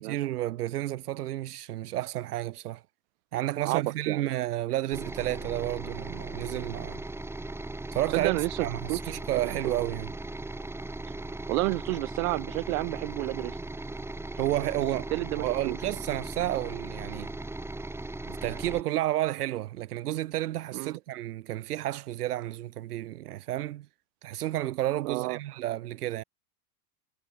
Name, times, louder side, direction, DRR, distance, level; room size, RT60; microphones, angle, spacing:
voice 1, 0.0-2.8 3.3-7.0 7.9-10.1 14.4-15.1 15.4-17.3 18.3-23.9 24.2-26.2, right 14 dB, 80° right, 5.0 m, -31 dB
voice 2, 3.6-4.2 8.1-9.0 9.6-9.7 11.5-13.6 15.1-15.7 20.7-20.9 25.0-25.4, right 23 dB, 65° right, 5.1 m, -30 dB
sound 1, 4.9-18.8, right 2 dB, 5° right, 1.8 m, -38 dB
supercardioid pair, 125°, 45 cm